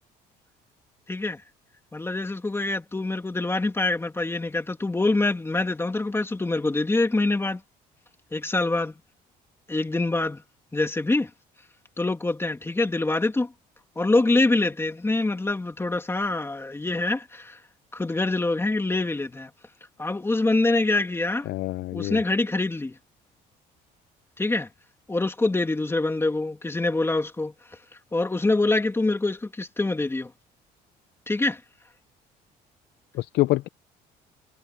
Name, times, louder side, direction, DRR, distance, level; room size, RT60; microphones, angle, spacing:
voice 1, 1.1-1.4 1.9-7.6 8.3-8.9 9.7-10.4 10.7-11.3 12.0-13.5 14.0-17.6 17.9-19.5 20.0-21.5 21.9-23.0 24.4-24.7 25.1-27.5 28.1-30.3 31.3-31.6, left 2 dB, 15° left, 2.6 m, -25 dB
voice 2, 21.5-22.2 33.1-33.7, left 18 dB, 75° left, 0.5 m, -26 dB
cardioid pair, 110°, 17 cm